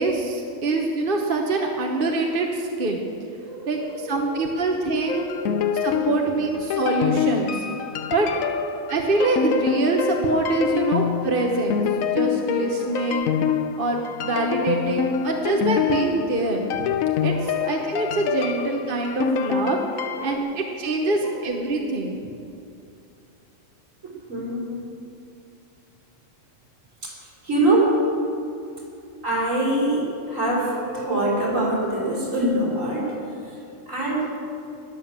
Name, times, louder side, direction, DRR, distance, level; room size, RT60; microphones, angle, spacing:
voice 1, 0.0-3.0 3.7-5.2 5.8-7.6 8.1-8.3 8.9-11.8 12.1-13.3 13.8-16.9 17.2-22.2, right 2 dB, 45° right, 1 dB, 1.2 m, -24 dB
voice 2, 3.4-4.5 5.2-5.7 6.1-6.3 8.1-8.2 10.7-10.8 12.8-13.1 14.6-14.8 17.3-17.5 18.4-18.6 20.2-20.3 21.0-21.4 24.0-24.9 27.0-28.0 29.2-33.6 33.9-34.3, right 1 dB, 70° right, -4 dB, 4.5 m, -25 dB
sound 1, 5.1-20.4, left 7 dB, 80° left, 1.1 m, -26 dB
21.0 x 7.2 x 7.3 m, 2.6 s
omnidirectional pair, 1.4 m